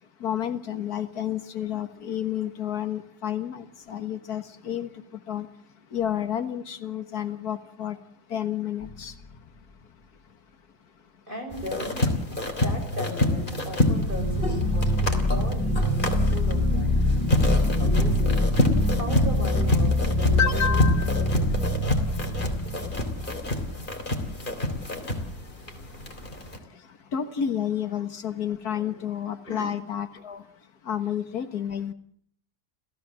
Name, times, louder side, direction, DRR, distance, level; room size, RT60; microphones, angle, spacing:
voice 1, 0.2-4.9 5.3-5.5 5.9-8.0 8.3-9.1 20.4-21.1 27.1-30.4 30.9-31.9, left 9 dB, 80° left, 10 dB, 2.0 m, -30 dB
sound 1, 8.8-9.4 13.7-23.9, left 1 dB, 10° left, 5.7 m, -25 dB
voice 2, 11.3-12.2 12.5-17.0 17.3-18.5 18.9-20.8 21.1-21.8 28.7-28.9 29.5-29.7, equal, 30° right, 4 dB, 6.8 m, -38 dB
sound 2, 11.5-26.6, left 1 dB, 30° left, 3.5 m, -28 dB
29.0 x 15.5 x 7.6 m, 0.62 s
omnidirectional pair, 1.6 m